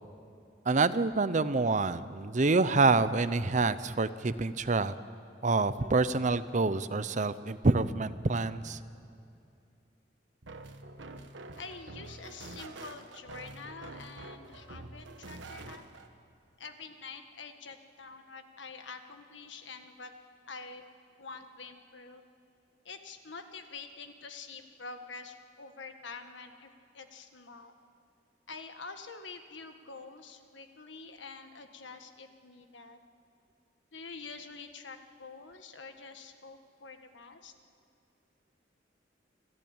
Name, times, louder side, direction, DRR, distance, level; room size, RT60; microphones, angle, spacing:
voice 1, 0.7-4.9 5.4-8.8, right 3 dB, 40° right, 13 dB, 0.7 m, -27 dB
sound 1, 10.4-16.1, right 2 dB, 90° right, 1.3 m, -46 dB
voice 2, 11.6-15.8 16.6-20.1 20.5-20.8 21.2-22.2 22.8-26.7 26.9-27.8 28.5-33.0 33.9-37.5, left 4 dB, 85° left, 7 dB, 1.5 m, -46 dB
26.0 x 14.0 x 8.9 m, 2.5 s
head